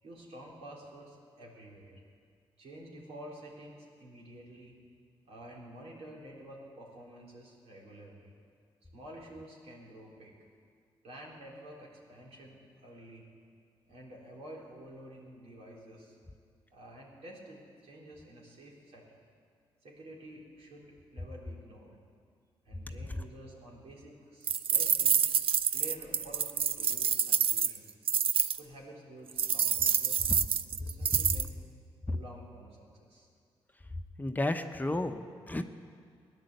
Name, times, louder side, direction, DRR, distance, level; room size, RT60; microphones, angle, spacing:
voice 1, 0.0-2.0 2.6-4.7 5.2-8.3 8.9-10.3 11.0-13.3 13.9-16.2 16.7-19.2 19.8-22.0 22.6-25.2 25.7-27.9 28.6-30.3 30.6-31.6 32.1-33.3, right 1 dB, 75° right, -3 dB, 3.9 m, -50 dB
sound 1, 24.5-28.6 29.4-31.5, right 7 dB, 60° right, 0.6 m, -27 dB
voice 2, 34.2-35.6, left 1 dB, 15° left, 6 dB, 0.9 m, -32 dB
17.0 x 10.5 x 8.0 m, 2.2 s
supercardioid pair, 60°, 11 cm